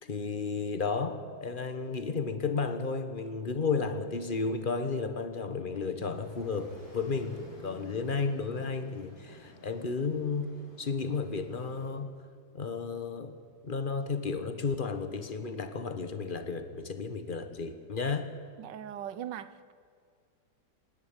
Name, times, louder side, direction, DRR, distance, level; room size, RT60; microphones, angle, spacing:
voice 1, 0.0-12.1 12.5-13.4 13.6-18.3, left 4 dB, 30° left, 1.2 m, -33 dB
sound 1, 6.0-11.9, left 1 dB, 60° left, 6.7 m, -53 dB
voice 2, 18.6-19.7, right 10 dB, 70° right, 1.4 m, -40 dB
26.5 x 11.0 x 9.7 m
omnidirectional pair, 2.1 m